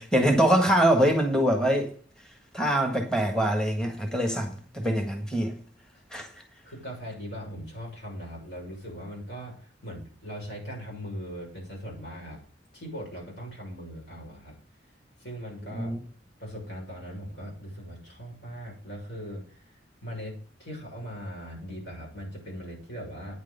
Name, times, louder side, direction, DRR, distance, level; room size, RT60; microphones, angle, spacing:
voice 1, 0.0-1.9 2.5-5.5 6.1-6.3 15.7-16.0, right 1 dB, 5° left, 1.6 m, -24 dB
voice 2, 6.6-12.4 12.7-14.6 15.2-15.9 16.4-19.6 20.0-23.4, equal, 70° left, 6.6 m, -39 dB
9.5 x 6.6 x 6.7 m
head